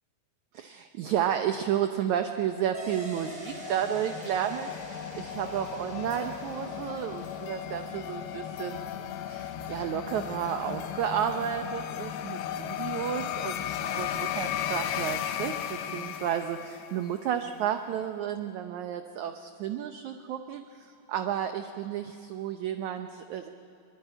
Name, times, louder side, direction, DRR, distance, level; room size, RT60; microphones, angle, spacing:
voice 1, 0.5-23.5, right 9 dB, 80° right, 8 dB, 1.7 m, -32 dB
sound 1, 2.6-17.2, left 10 dB, 90° left, 3.0 m, -36 dB
sound 2, 2.7-11.8, equal, 15° right, 3.1 m, -46 dB
23.5 x 21.5 x 10.0 m, 2.6 s
omnidirectional pair, 4.4 m